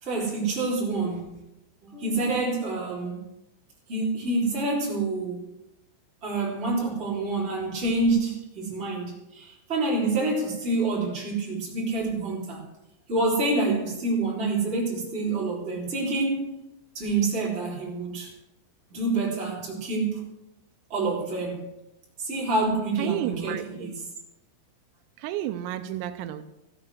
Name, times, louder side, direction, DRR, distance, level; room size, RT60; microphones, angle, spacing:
voice 1, 0.0-1.4 1.8-3.2 3.9-5.4 6.2-12.7 13.1-16.5 16.9-18.3 18.9-20.2 20.9-21.7 22.2-23.9, right 3 dB, 15° right, 3.0 m, -27 dB
voice 2, 23.0-23.9 25.2-26.4, right 12 dB, 90° right, 3.4 m, -32 dB
14.5 x 8.1 x 6.2 m
omnidirectional pair, 5.9 m